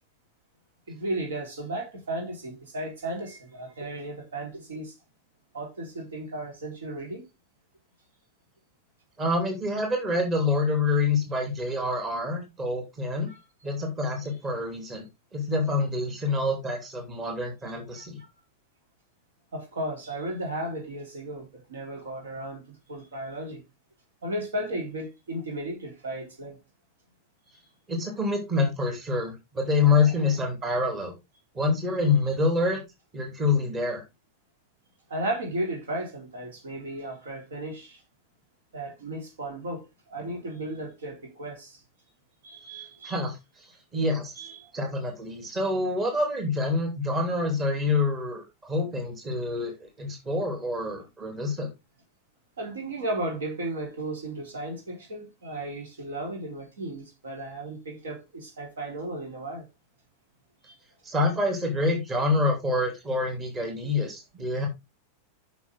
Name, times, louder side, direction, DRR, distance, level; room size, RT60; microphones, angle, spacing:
voice 1, 0.9-4.9 5.5-7.3 13.3-13.4 17.9-18.3 19.5-23.6 24.2-26.6 29.8-30.1 35.1-38.0 38.7-41.8 42.4-43.1 44.4-44.7 52.6-59.7 60.6-60.8, right 1 dB, 65° right, 4.1 m, -35 dB
voice 2, 9.2-13.3 13.6-15.0 15.3-18.2 27.9-31.1 31.5-32.8 33.1-34.0 43.0-43.4 43.9-44.3 44.7-51.7 61.0-64.7, left 3 dB, 20° right, 3.0 m, -26 dB
9.4 x 6.2 x 3.7 m
figure-of-eight pair, 90°, 0 cm